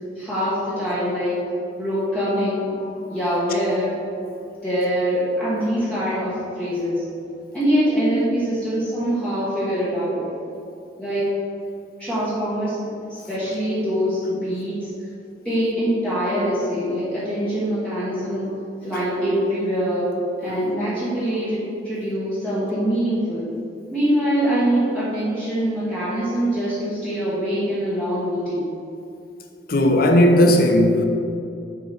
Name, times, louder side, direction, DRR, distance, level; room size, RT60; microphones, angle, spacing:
voice 1, 0.2-1.3 1.8-2.7 3.1-3.9 4.6-7.0 7.5-10.2 11.0-11.3 12.0-12.8 13.1-14.9 15.4-18.5 18.8-20.1 20.4-23.5 23.9-28.6, equal, 5° left, -11 dB, 1.3 m, -23 dB
voice 2, 29.7-31.0, left 1 dB, 55° left, 4 dB, 0.7 m, -15 dB
6.7 x 4.8 x 4.3 m, 2.6 s
head